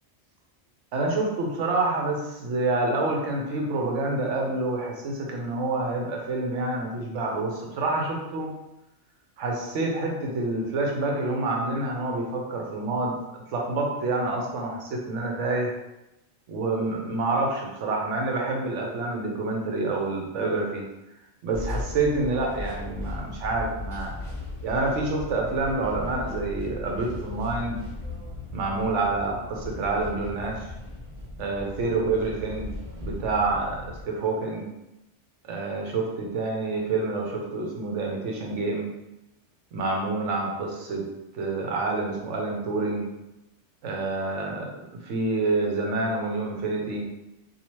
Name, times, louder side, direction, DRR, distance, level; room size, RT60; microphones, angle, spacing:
voice 1, 0.9-8.5 9.4-15.7 16.5-20.8 21.4-24.2 24.6-27.8 28.5-30.7 31.4-32.7 33.0-34.7 35.4-38.9 39.7-41.1 41.3-43.1 43.8-47.0, right 3 dB, 85° right, 0 dB, 1.0 m, -27 dB
sound 1, 21.5-34.0, left 2 dB, 30° right, 1.0 m, -37 dB
2.7 x 2.4 x 3.0 m, 0.91 s
omnidirectional pair, 1.2 m